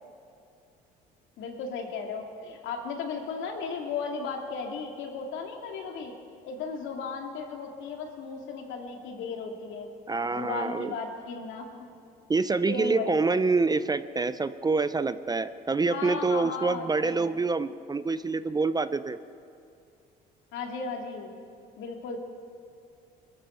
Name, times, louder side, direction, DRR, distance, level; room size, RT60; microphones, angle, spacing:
voice 1, 1.4-6.1 6.4-9.9 10.3-11.9 12.7-13.2 15.9-17.3 20.5-21.3 21.8-22.2, left 4 dB, 70° left, 2 dB, 2.3 m, -35 dB
voice 2, 10.1-10.9 12.3-19.2, right 4 dB, 20° right, 14 dB, 0.5 m, -26 dB
21.5 x 13.0 x 4.4 m, 2.5 s
supercardioid pair, 75°, 20 cm